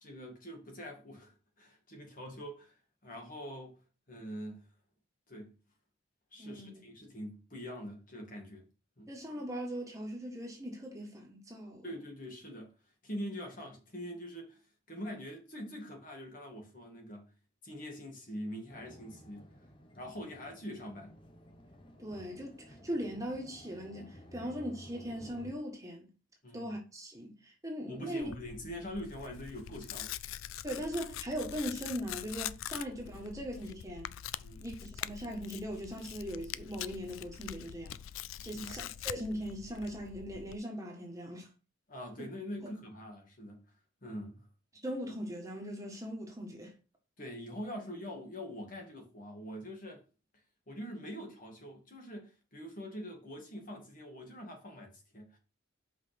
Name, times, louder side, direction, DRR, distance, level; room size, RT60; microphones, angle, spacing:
voice 1, 0.0-2.7 3.0-3.8 4.1-4.6 5.3-5.6 6.3-8.7 9.0-9.1 11.8-12.7 13.0-14.6 14.9-17.2 17.6-19.5 20.0-21.1 24.4-24.5 26.4-26.7 27.9-30.1 34.4-34.7 38.4-38.8 41.9-43.6 44.0-44.4 47.2-50.0 50.7-55.4, equal, 40° left, 2.0 m, -44 dB
voice 2, 6.4-6.8 9.1-11.9 22.0-26.1 26.5-28.3 30.6-34.1 34.6-38.0 38.4-41.5 44.8-46.7, equal, 15° right, 1.6 m, -40 dB
sound 1, 18.7-25.6, left 1 dB, 25° left, 1.0 m, -54 dB
Tearing, 28.2-40.6, left 11 dB, 85° left, 0.4 m, -44 dB
5.8 x 5.1 x 5.9 m
head